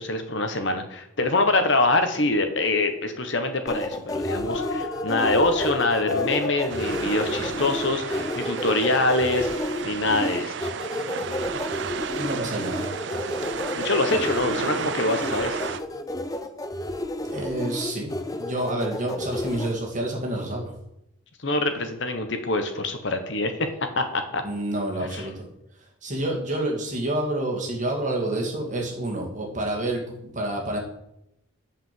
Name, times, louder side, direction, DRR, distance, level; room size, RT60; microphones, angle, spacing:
voice 1, 0.0-9.5 9.8-10.7 13.8-15.7 21.4-23.5 24.0-24.4 25.1-25.3, left 2 dB, 60° left, 7 dB, 1.1 m, -25 dB
sound 1, 3.7-19.7, left 1 dB, 15° left, 0.6 m, -31 dB
sound 2, 4.3-10.1, left 4 dB, 85° left, 0.9 m, -35 dB
sound 3, 6.7-15.8, right 6 dB, 60° right, 0.5 m, -33 dB
voice 2, 12.1-12.9 17.2-18.1 18.4-20.6 24.4-25.5 26.0-30.8, right 1 dB, 35° right, 0 dB, 2.3 m, -28 dB
8.8 x 5.1 x 7.6 m, 0.82 s
head